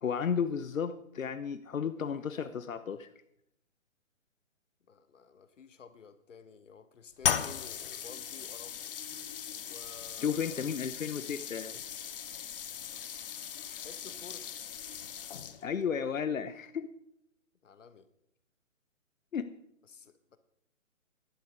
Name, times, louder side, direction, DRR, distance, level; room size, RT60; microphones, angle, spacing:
voice 1, 0.0-3.1 10.2-11.8 15.6-16.9 19.3-19.5, left 7 dB, 80° left, 11 dB, 0.9 m, -33 dB
voice 2, 4.9-8.8 9.6-10.8 13.8-14.5 17.6-18.1 19.8-20.4, left 6 dB, 65° left, 11 dB, 1.4 m, -52 dB
sound 1, 7.2-15.8, left 8 dB, 45° left, 0.8 m, -38 dB
16.0 x 12.0 x 3.7 m, 0.75 s
hypercardioid pair, 145°, 40 cm